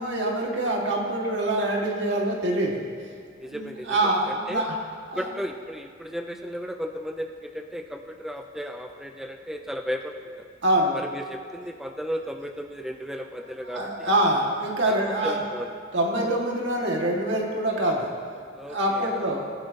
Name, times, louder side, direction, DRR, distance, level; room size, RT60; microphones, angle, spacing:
voice 1, 0.0-2.8 3.5-4.8 5.1-5.3 10.6-11.0 13.7-15.4 15.9-18.1 18.7-19.4, right 1 dB, 70° right, -1 dB, 1.9 m, -25 dB
voice 2, 3.4-4.7 5.2-10.5 10.9-14.1 14.9-15.7 18.6-19.4, equal, ahead, 4 dB, 0.4 m, -35 dB
19.0 x 9.9 x 2.8 m, 2.1 s
head